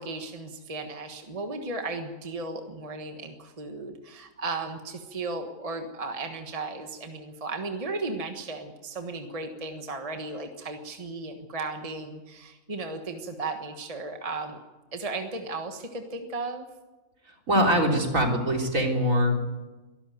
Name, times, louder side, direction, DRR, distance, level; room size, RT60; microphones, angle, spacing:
voice 1, 0.0-14.6 14.9-16.6, right 3 dB, 25° right, 5 dB, 1.5 m, -35 dB
voice 2, 17.5-19.7, equal, 60° right, 1 dB, 3.9 m, -23 dB
24.0 x 13.0 x 9.3 m, 1.2 s
omnidirectional pair, 1.6 m